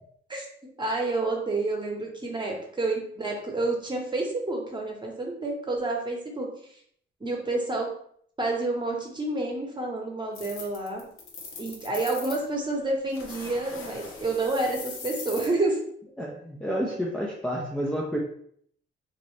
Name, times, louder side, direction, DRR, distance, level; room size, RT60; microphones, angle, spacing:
voice 1, 0.8-6.5 7.2-7.9 8.4-11.1 11.6-15.8, right 2 dB, 20° right, 0 dB, 0.9 m, -29 dB
sound 1, 10.3-12.4 13.1-15.5, left 4 dB, 90° left, 1.0 m, -40 dB
voice 2, 16.2-18.2, equal, 5° left, -3 dB, 0.4 m, -30 dB
3.9 x 2.6 x 3.1 m, 0.64 s
wide cardioid pair, 140°, 21 cm